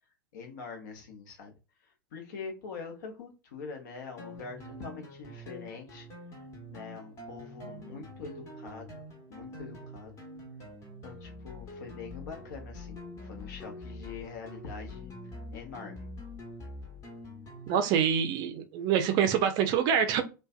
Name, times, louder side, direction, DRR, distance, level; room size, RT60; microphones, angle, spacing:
voice 1, 0.3-1.5 2.1-6.1 6.7-9.0 9.3-10.2 11.0-15.1 15.5-16.1, left 5 dB, 60° left, 0.8 m, -44 dB
sound 1, 4.2-17.9, left 1 dB, 30° left, 1.0 m, -45 dB
voice 2, 17.7-20.2, right 8 dB, 40° right, 0.5 m, -26 dB
2.5 x 2.2 x 2.3 m
figure-of-eight pair, 90°, 11 cm